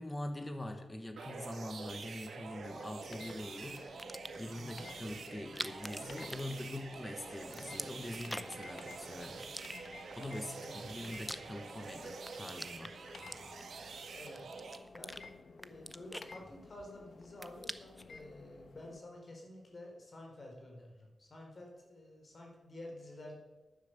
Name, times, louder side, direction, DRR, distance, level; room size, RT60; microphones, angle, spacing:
voice 1, 0.0-9.5 10.2-13.0, left 1 dB, 20° left, 7 dB, 1.3 m, -44 dB
sound 1, 1.2-14.8, right 4 dB, 90° right, 1.8 m, -47 dB
sound 2, 2.5-19.0, left 4 dB, 70° left, 1.1 m, -54 dB
sound 3, 3.9-4.5 5.4-7.0 7.3-8.7 9.4-10.2 10.8-11.9 12.2-13.9 14.4-15.2 15.6-16.9 17.2-18.1, equal, 5° left, 0.7 m, -45 dB
voice 2, 14.1-14.4 14.9-23.4, left 1 dB, 50° left, 0 dB, 4.2 m, -50 dB
11.0 x 10.0 x 6.7 m, 1.2 s
wide cardioid pair, 95°, 0 cm